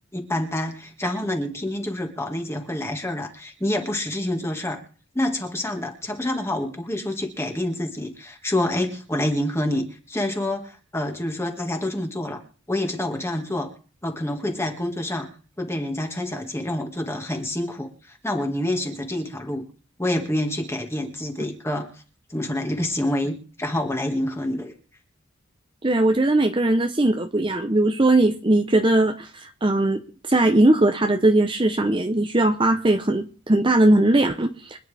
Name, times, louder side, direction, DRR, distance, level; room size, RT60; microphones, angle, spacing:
voice 1, 0.1-4.8 5.1-12.4 12.7-13.7 14.0-15.3 15.6-19.7 20.0-21.9 22.3-24.7, left 1 dB, 10° left, 4 dB, 2.0 m, -27 dB
voice 2, 25.8-34.8, right 2 dB, 25° right, 5 dB, 0.8 m, -20 dB
25.0 x 9.9 x 3.5 m, 0.40 s
head